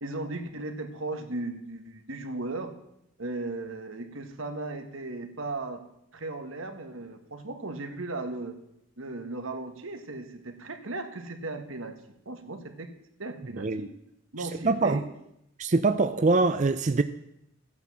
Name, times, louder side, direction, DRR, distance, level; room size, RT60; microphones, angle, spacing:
voice 1, 0.0-2.7 3.2-5.8 6.1-8.5 9.0-12.0 12.3-12.9 13.2-13.9 14.3-15.1, right 2 dB, 85° right, 1.7 m, -36 dB
voice 2, 14.6-15.0 15.6-17.0, right 3 dB, 35° right, 0.5 m, -23 dB
14.5 x 9.4 x 7.4 m
head